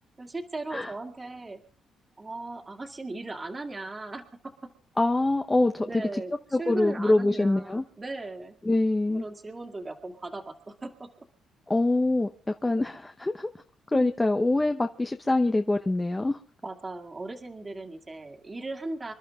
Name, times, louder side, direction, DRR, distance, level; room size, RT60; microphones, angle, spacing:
voice 1, 0.2-1.6 2.2-4.7 5.9-6.3 6.6-8.6 9.1-11.1 13.9-14.1 16.6-19.1, right 2 dB, 25° right, 2.0 m, -37 dB
voice 2, 5.0-5.9 6.5-7.8 8.6-9.2 11.7-12.3 12.6-13.5 13.9-16.4, left 2 dB, 15° left, 0.8 m, -24 dB
27.0 x 11.5 x 3.6 m
cardioid pair, 90°, 0 cm